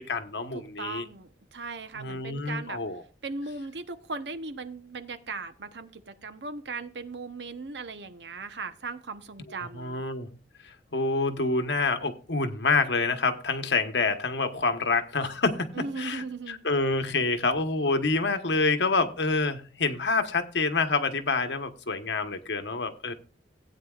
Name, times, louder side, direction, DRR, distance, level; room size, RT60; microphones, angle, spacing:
voice 1, 0.0-1.0 1.9-3.0 9.5-10.3 10.6-23.1, left 3 dB, 80° left, 7 dB, 1.2 m, -27 dB
voice 2, 0.5-2.8 3.2-10.0 15.7-16.6, right 3 dB, 80° right, 10 dB, 0.9 m, -38 dB
17.0 x 8.8 x 2.4 m, 0.35 s
head